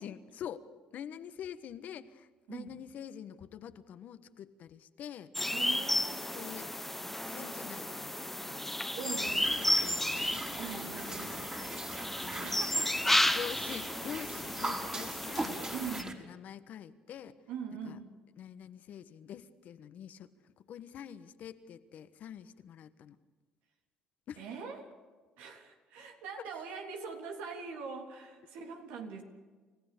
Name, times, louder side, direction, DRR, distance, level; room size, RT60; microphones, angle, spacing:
voice 1, 0.0-5.3 6.3-6.9 7.2-11.5 12.2-12.6 13.1-15.7 16.0-17.4 17.8-18.0 18.4-23.2 24.3-24.4, left 9 dB, 65° left, 12 dB, 1.3 m, -46 dB
sound 1, 5.3-16.0, left 1 dB, 5° left, 1.0 m, -33 dB
voice 2, 5.5-6.2 8.9-9.9 10.6-11.5 12.2-13.1 15.7-16.2 17.5-18.1 24.4-24.8 25.4-29.2, right 6 dB, 80° right, 3 dB, 3.3 m, -43 dB
sound 2, 9.1-16.1, right 2 dB, 25° right, 3.9 m, -41 dB
29.0 x 15.5 x 6.8 m, 1.4 s
supercardioid pair, 75°, 3 cm